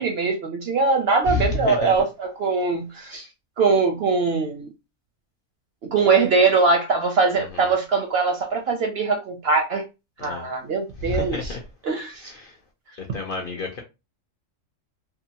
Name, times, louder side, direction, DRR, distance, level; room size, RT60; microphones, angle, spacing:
voice 1, 0.0-3.3 3.6-4.7 5.8-9.8 10.2-11.6 11.8-12.3, right 4 dB, 65° right, 0.7 m, -22 dB
voice 2, 1.3-1.9 10.2-10.5 11.0-11.6 12.4-12.5 13.1-13.8, left 3 dB, 55° left, 0.6 m, -28 dB
2.7 x 2.3 x 2.7 m
omnidirectional pair, 1.4 m